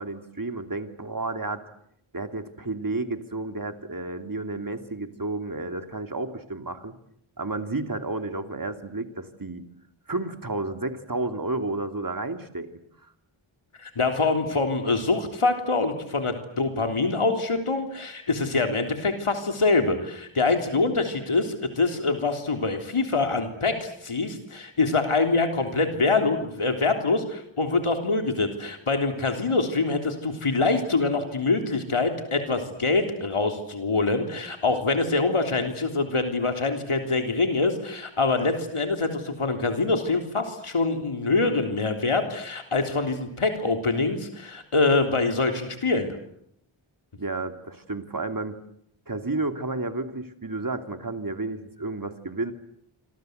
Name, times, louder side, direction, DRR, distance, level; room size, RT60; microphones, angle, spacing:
voice 1, 0.0-1.6 2.1-7.0 7.4-9.6 10.1-12.8 47.2-48.6 49.1-52.5, right 2 dB, 40° right, 7 dB, 2.9 m, -31 dB
voice 2, 13.8-46.1, left 3 dB, 85° left, 5 dB, 3.6 m, -25 dB
28.5 x 25.5 x 8.1 m, 0.72 s
wide cardioid pair, 55°, 49 cm